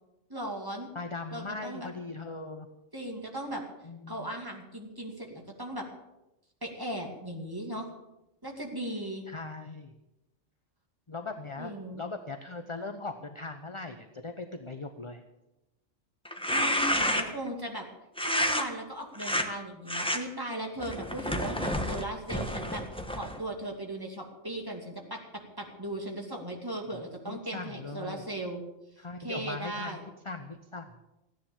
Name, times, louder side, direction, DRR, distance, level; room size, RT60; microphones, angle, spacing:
voice 1, 0.3-0.9 1.3-1.9 2.9-3.6 4.1-5.9 6.6-7.9 8.4-9.2 11.6-12.0 16.5-17.9 18.2-22.8 23.1-28.6 29.2-30.0, right 1 dB, 15° right, 1 dB, 2.5 m, -37 dB
voice 2, 0.9-2.7 3.8-4.3 9.3-9.9 11.1-15.2 26.9-28.2 29.0-31.0, left 3 dB, 25° left, 6 dB, 0.8 m, -40 dB
sound 1, 16.3-17.5 18.2-18.6 19.2-19.5 19.9-20.2 20.8-23.4, equal, 5° left, 1.1 m, -29 dB
15.5 x 10.0 x 7.2 m, 0.95 s
omnidirectional pair, 1.4 m